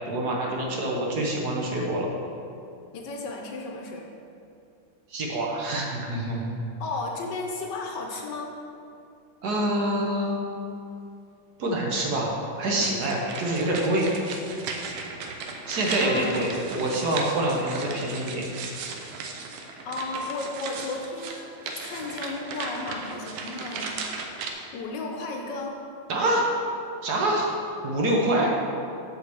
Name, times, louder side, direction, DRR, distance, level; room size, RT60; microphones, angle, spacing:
voice 1, 0.1-2.1 5.1-6.6 9.4-10.4 11.6-14.1 15.7-18.4 26.1-26.5 27.0-27.5 27.8-28.6, right 1 dB, 60° right, -2 dB, 1.3 m, -26 dB
voice 2, 2.9-4.0 6.8-8.5 16.0-16.5 19.8-24.0 24.7-25.8, left 3 dB, 65° left, 1 dB, 1.3 m, -34 dB
sound 1, 12.8-24.5, right 4 dB, 90° right, 1.6 m, -36 dB
6.5 x 4.7 x 6.8 m, 2.5 s
omnidirectional pair, 2.2 m